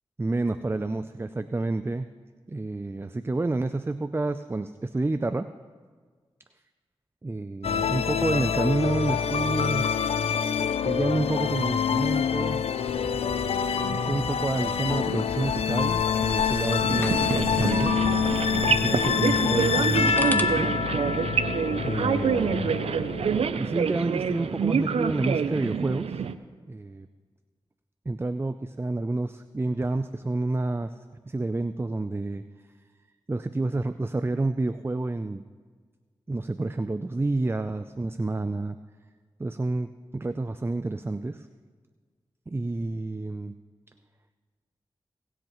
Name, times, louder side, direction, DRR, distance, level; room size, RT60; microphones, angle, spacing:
voice 1, 0.2-2.1 2.5-5.5 7.2-10.2 10.8-12.6 13.9-17.9 18.7-20.7 21.8-22.8 23.5-26.2 26.7-27.1 28.1-30.9 31.3-32.4 33.3-35.4 36.3-38.8 39.4-41.5 42.5-43.6, right 2 dB, 25° right, 10 dB, 0.4 m, -29 dB
sound 1, 7.6-23.4, left 7 dB, 80° left, 0.4 m, -26 dB
sound 2, 12.8-20.4, left 1 dB, 20° left, 1.0 m, -38 dB
sound 3, 16.8-26.3, right 6 dB, 85° right, 0.5 m, -27 dB
22.5 x 7.9 x 3.1 m, 1.5 s
cardioid pair, 40°, 10 cm